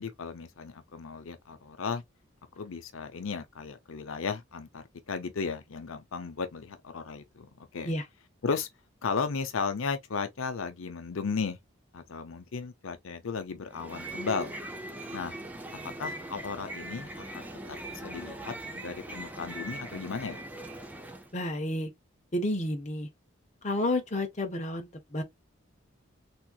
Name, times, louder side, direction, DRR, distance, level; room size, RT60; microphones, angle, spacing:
voice 1, 0.0-2.0 2.6-7.9 8.4-8.7 9.0-11.6 11.9-14.6 15.1-15.4 15.8-20.4, left 5 dB, 80° left, 0.6 m, -35 dB
sound 1, 13.7-21.3, right 1 dB, 10° right, 0.5 m, -41 dB
voice 2, 21.3-21.9 22.3-23.1 23.6-25.2, left 1 dB, 35° left, 0.8 m, -30 dB
3.5 x 2.9 x 2.3 m
head